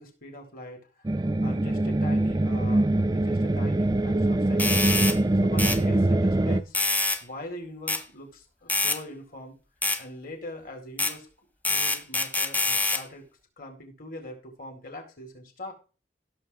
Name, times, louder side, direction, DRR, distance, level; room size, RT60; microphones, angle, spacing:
voice 1, 0.0-4.9 5.4-6.8 7.2-9.6 10.0-11.3 11.7-13.3 13.6-15.7, left 1 dB, 50° left, 2 dB, 4.5 m, -42 dB
sound 1, 1.0-6.6, right 1 dB, 20° right, 0.4 m, -23 dB
sound 2, 4.6-5.2 5.6-5.8 6.7-7.2 7.9-8.0 8.7-9.0 9.8-10.0 11.0-11.1 11.6-13.0, left 2 dB, 10° left, 1.0 m, -25 dB
16.5 x 7.4 x 3.7 m, 0.34 s
head